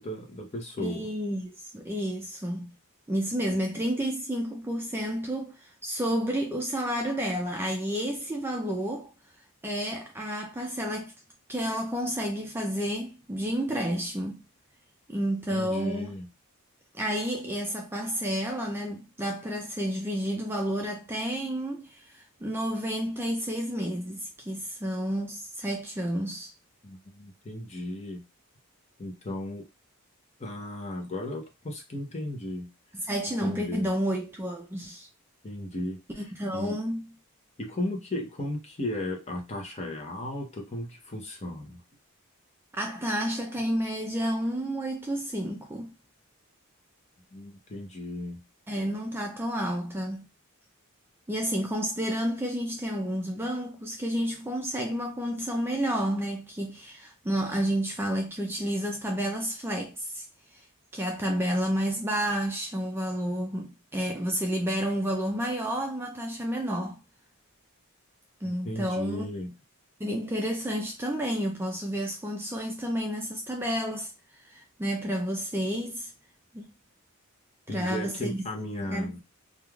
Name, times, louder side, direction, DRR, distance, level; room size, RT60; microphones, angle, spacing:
voice 1, 0.0-1.1 15.5-16.3 26.8-28.2 29.0-29.6 30.4-32.7 33.4-33.9 35.4-36.8 37.6-41.8 47.3-48.4 68.4-69.5 77.7-79.2, left 1 dB, 30° left, 0.7 m, -35 dB
voice 2, 0.8-2.7 3.1-9.1 9.6-11.1 11.5-14.4 15.1-16.1 16.9-26.5 33.0-35.1 36.2-37.0 42.8-45.9 48.7-50.2 51.3-60.2 60.5-60.6 60.9-67.0 68.4-69.3 70.0-74.1 74.4-76.1 76.5-76.6 77.7-78.4 78.8-79.1, equal, 10° right, 0.3 m, -30 dB
3.1 x 2.3 x 2.3 m
head